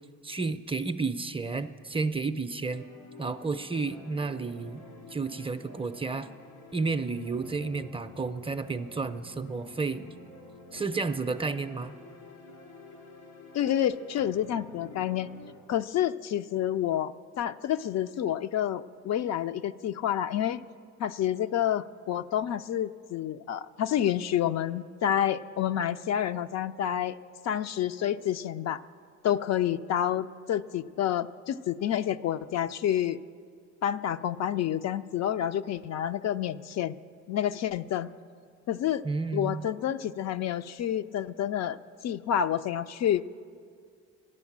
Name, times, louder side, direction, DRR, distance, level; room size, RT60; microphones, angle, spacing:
voice 1, 0.2-2.9 3.2-4.8 5.1-6.3 6.7-10.1 10.7-11.9 39.0-39.7, right 4 dB, 20° right, 10 dB, 0.5 m, -31 dB
sound 1, 2.7-15.5, left 2 dB, 85° left, 2.8 m, -49 dB
voice 2, 13.5-15.3 15.7-20.6 21.0-27.2 27.4-28.8 29.2-33.2 33.8-36.9 37.3-38.1 38.7-39.0 39.3-41.8 42.0-43.2, left 10 dB, 60° left, 11 dB, 0.4 m, -29 dB
13.5 x 11.0 x 7.3 m, 2.1 s
cardioid pair, 90°, 30 cm